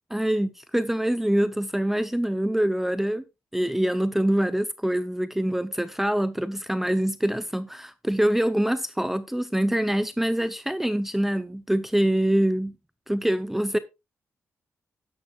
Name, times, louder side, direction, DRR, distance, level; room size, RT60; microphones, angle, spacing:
voice 1, 0.1-3.2 3.5-12.7 13.1-13.8, right 1 dB, 5° right, 0.6 m, -25 dB
13.0 x 10.5 x 2.3 m
cardioid pair, 85°, 5 cm